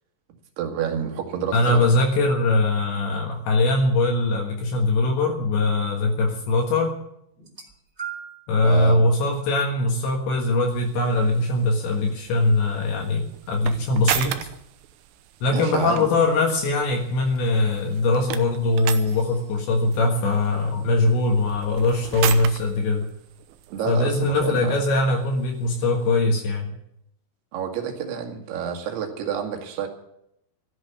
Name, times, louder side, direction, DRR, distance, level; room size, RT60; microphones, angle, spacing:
voice 1, 0.6-1.9 8.6-9.0 15.5-16.1 23.7-24.8 27.5-29.9, right 7 dB, 60° right, 3 dB, 3.8 m, -29 dB
voice 2, 1.5-6.9 8.5-14.4 15.4-23.0 23.9-26.7, left 2 dB, 65° left, 0 dB, 3.6 m, -21 dB
sound 1, 7.4-8.5 9.4-9.6 10.6-10.7, right 8 dB, 20° right, 1.8 m, -37 dB
sound 2, 10.7-26.2, right 12 dB, 80° right, 3.5 m, -36 dB
14.0 x 11.0 x 8.2 m, 0.78 s
omnidirectional pair, 6.0 m